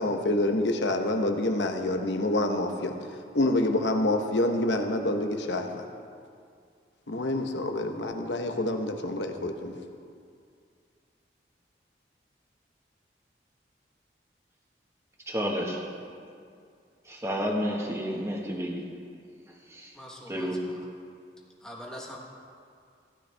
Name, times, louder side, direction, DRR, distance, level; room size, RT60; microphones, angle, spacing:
voice 1, 0.0-3.0 3.3-5.9 7.1-9.7, left 1 dB, 90° left, 5 dB, 1.0 m, -27 dB
voice 2, 15.3-15.8 17.1-18.8 19.7-19.9 20.3-20.6, equal, 15° right, -1 dB, 1.4 m, -30 dB
voice 3, 19.9-20.9 21.6-22.2, equal, 5° left, -3 dB, 1.2 m, -43 dB
15.5 x 11.5 x 3.4 m, 2.3 s
head